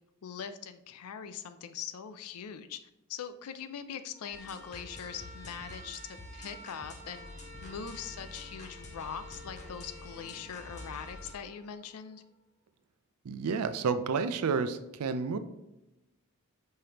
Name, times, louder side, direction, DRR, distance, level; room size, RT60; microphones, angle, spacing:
voice 1, 0.2-2.8 3.1-7.3 7.6-12.2, left 7 dB, 75° left, 11 dB, 0.4 m, -42 dB
sound 1, 4.1-12.3, equal, 15° left, 1.4 m, -51 dB
sound 2, 4.3-11.3, left 2 dB, 30° left, 0.6 m, -48 dB
voice 2, 13.2-15.4, right 5 dB, 80° right, 11 dB, 0.4 m, -30 dB
5.5 x 3.3 x 2.9 m, 0.93 s
head